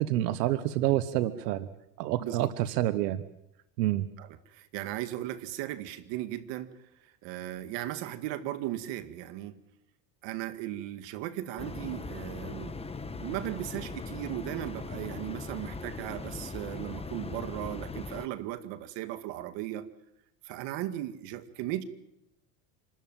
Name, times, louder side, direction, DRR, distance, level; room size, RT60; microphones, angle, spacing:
voice 1, 0.0-1.7 2.0-3.2 3.8-4.1, right 14 dB, 85° right, 14 dB, 1.2 m, -28 dB
voice 2, 2.2-2.5 4.2-6.7 7.0-9.6 10.2-12.8 13.2-19.9 20.4-21.8, right 13 dB, 65° right, 11 dB, 2.1 m, -37 dB
sound 1, 11.6-18.3, left 3 dB, 10° left, 1.2 m, -39 dB
26.5 x 13.5 x 9.1 m, 0.85 s
supercardioid pair, 110°, 47 cm